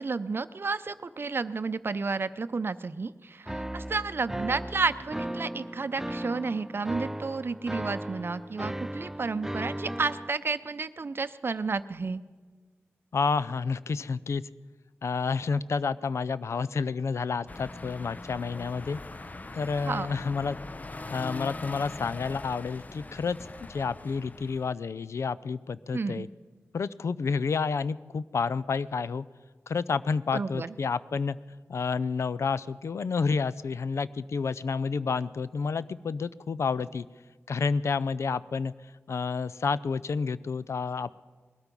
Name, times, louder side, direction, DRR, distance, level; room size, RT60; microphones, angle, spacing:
voice 1, 0.0-12.2 19.9-20.1 25.9-26.3 30.3-30.7, right 4 dB, 50° right, 13 dB, 0.6 m, -31 dB
sound 1, 3.5-10.3, right 1 dB, 10° right, 0.4 m, -36 dB
voice 2, 13.1-14.4 15.0-19.0 19.5-20.6 21.1-26.3 26.7-29.3 29.7-31.4 31.7-37.1 37.5-38.7 39.1-41.2, left 5 dB, 75° left, 17 dB, 0.4 m, -30 dB
sound 2, 17.5-24.7, left 2 dB, 35° left, 0.6 m, -41 dB
20.5 x 13.0 x 5.3 m, 1.4 s
cardioid pair, 60°, 5 cm